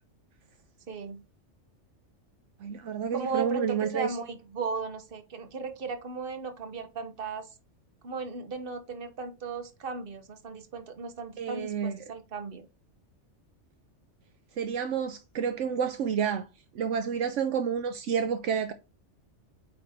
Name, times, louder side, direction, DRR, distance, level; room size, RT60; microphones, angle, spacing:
voice 1, 0.9-1.2 3.1-7.5 8.0-12.7, right 4 dB, 50° right, 1.2 m, -36 dB
voice 2, 2.6-4.2 11.4-12.0 14.6-16.5 16.7-18.7, right 7 dB, 75° right, 1.0 m, -29 dB
8.5 x 3.3 x 3.5 m
omnidirectional pair, 1.3 m